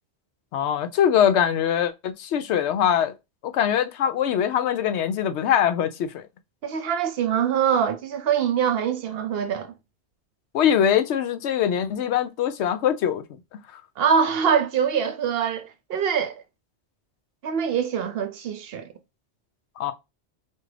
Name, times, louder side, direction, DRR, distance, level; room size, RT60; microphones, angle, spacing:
voice 1, 0.5-3.1 3.4-6.2 10.5-13.2 13.7-13.8 19.8-19.9, left 9 dB, 80° left, 0.9 m, -22 dB
voice 2, 6.6-9.7 14.0-16.4 17.4-18.9, right 7 dB, 65° right, 0.7 m, -24 dB
4.4 x 2.5 x 3.2 m
omnidirectional pair, 1.1 m